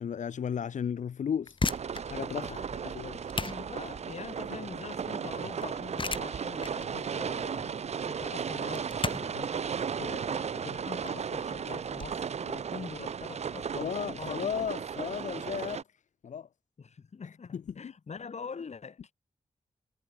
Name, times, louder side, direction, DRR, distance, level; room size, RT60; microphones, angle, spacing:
voice 1, 0.0-1.6 2.0-3.2 13.7-15.8 16.2-16.5 17.5-17.9, left 7 dB, 80° left, 1.2 m, -34 dB
sound 1, 1.3-12.1, left 3 dB, 40° left, 3.6 m, -38 dB
sound 2, 1.6-15.8, right 7 dB, 60° right, 0.6 m, -35 dB
voice 2, 2.4-3.0 3.5-14.5 16.8-19.0, left 5 dB, 65° left, 5.5 m, -44 dB
cardioid pair, 65°, 12 cm